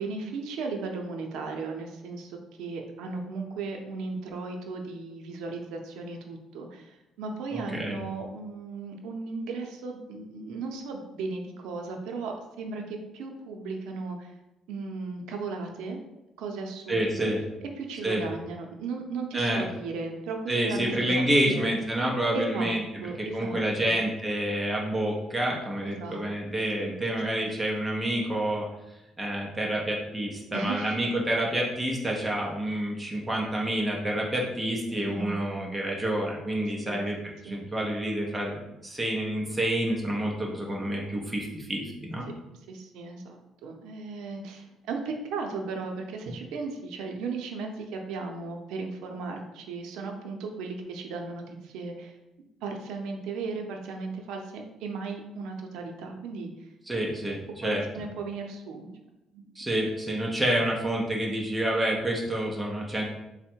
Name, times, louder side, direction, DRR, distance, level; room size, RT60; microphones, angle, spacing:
voice 1, 0.0-14.3 14.7-16.0 16.4-17.3 17.8-21.1 21.4-21.7 22.3-24.0 26.0-26.2 26.8-27.0 27.4-27.5 30.5-30.9 34.9-35.7 36.8-37.0 37.4-37.6 42.7-52.2 52.6-56.7 57.6-58.9 59.3-59.5, right 4 dB, 90° right, 3 dB, 0.5 m, -36 dB
voice 2, 7.5-8.0 16.9-17.4 18.0-18.2 19.3-19.6 20.5-22.8 23.2-28.7 29.2-38.6 38.8-42.3 56.9-57.8 59.6-63.0, right 1 dB, 5° right, -2 dB, 0.5 m, -28 dB
3.5 x 2.1 x 4.3 m, 0.94 s
cardioid pair, 180°, 0 cm